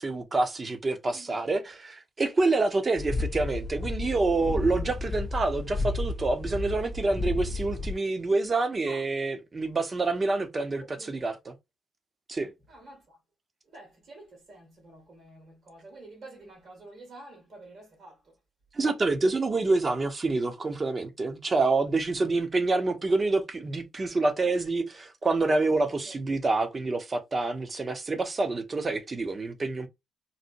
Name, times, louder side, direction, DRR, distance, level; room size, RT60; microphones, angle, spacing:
voice 1, 0.0-11.5 12.3-12.5 18.7-29.9, right 3 dB, 30° right, 0.7 m, -27 dB
sound 1, 3.0-7.9, left 2 dB, 20° left, 0.5 m, -32 dB
voice 2, 13.7-14.2 14.5-15.4 15.7-18.1, right 2 dB, 70° right, 2.0 m, -48 dB
4.1 x 2.1 x 2.6 m
cardioid pair, 90°, 0 cm